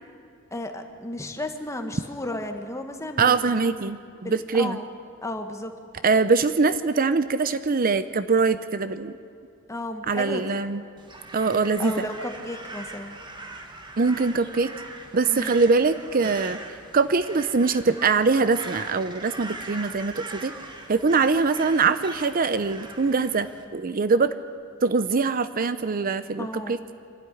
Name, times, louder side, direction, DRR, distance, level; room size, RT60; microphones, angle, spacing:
voice 1, 0.5-3.6 4.2-4.9 5.2-5.7 9.7-10.6 11.8-13.2 15.3-15.5 26.4-26.7, left 1 dB, 15° left, 5 dB, 1.6 m, -33 dB
voice 2, 3.2-4.8 6.0-9.1 10.1-10.8 11.3-11.9 14.0-14.7 15.1-16.6 16.9-20.5 20.9-23.5 23.7-24.3 24.8-26.8, right 4 dB, 45° right, 12 dB, 0.6 m, -23 dB
Crow, 11.0-23.6, right 2 dB, 25° right, 1.7 m, -41 dB
26.0 x 12.5 x 9.9 m, 2.3 s
head